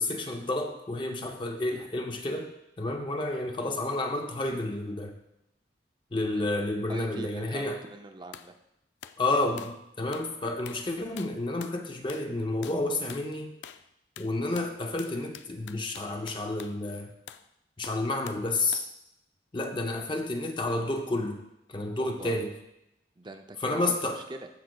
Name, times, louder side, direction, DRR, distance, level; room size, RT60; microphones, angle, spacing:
voice 1, 0.0-2.5 2.8-5.2 6.1-7.8 9.2-13.6 14.2-17.1 17.8-18.9 19.5-21.4 21.7-22.5 23.6-24.2, left 2 dB, 25° left, 3 dB, 0.5 m, -30 dB
voice 2, 6.9-8.6 22.0-22.4 23.2-24.5, right 2 dB, 25° right, 6 dB, 0.4 m, -42 dB
sound 1, 8.3-8.5 9.0-9.2 9.6-9.8 10.1-10.3 10.7-10.9 11.2-11.8 12.1-12.3 12.6-12.8 13.1-13.3 13.6-13.9 14.2-16.8 17.3-17.5 17.8-18.5 18.7-18.9, left 9 dB, 80° left, 0.4 m, -46 dB
14.0 x 5.7 x 2.2 m, 0.86 s
head